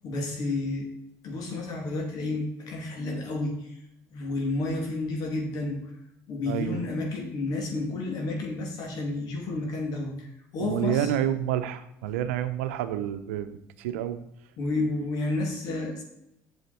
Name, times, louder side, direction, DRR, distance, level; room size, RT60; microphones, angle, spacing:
voice 1, 0.0-0.9 1.2-3.6 4.1-5.8 6.3-10.3 10.5-11.1 14.6-16.0, left 2 dB, 65° left, 1 dB, 2.9 m, -31 dB
voice 2, 6.5-6.8 10.6-14.2, right 11 dB, 90° right, 10 dB, 0.7 m, -29 dB
8.0 x 7.2 x 4.3 m, 0.81 s
supercardioid pair, 80°, 7 cm